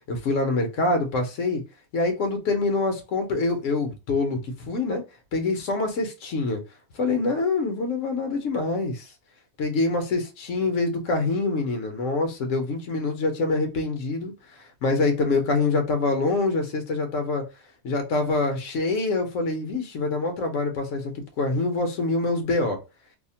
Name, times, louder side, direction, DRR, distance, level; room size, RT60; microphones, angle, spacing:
voice 1, 0.1-1.6 1.9-5.0 5.3-6.6 7.0-9.1 9.6-14.3 14.8-17.4 17.8-21.1 21.4-22.8, left 3 dB, 90° left, 1.2 m, -25 dB
2.8 x 2.1 x 2.7 m
omnidirectional pair, 1.3 m